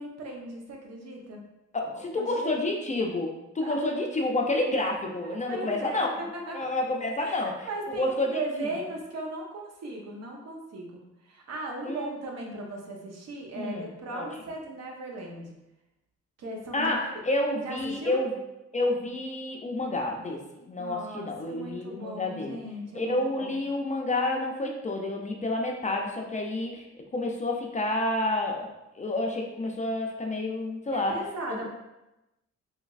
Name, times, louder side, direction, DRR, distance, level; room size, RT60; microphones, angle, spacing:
voice 1, 0.0-1.4 1.9-2.6 3.6-3.8 5.2-6.7 7.2-15.6 16.4-17.2 17.6-18.2 20.8-23.6 30.9-31.7, right 2 dB, 60° right, 0 dB, 0.8 m, -38 dB
voice 2, 1.7-6.1 6.5-7.7 8.0-8.7 11.8-12.1 13.5-14.3 16.7-18.3 18.7-22.6 22.9-26.9 27.1-31.2 31.5-31.7, left 2 dB, 25° left, 1 dB, 0.4 m, -29 dB
3.2 x 3.0 x 2.4 m, 0.97 s
cardioid pair, 85°, 29 cm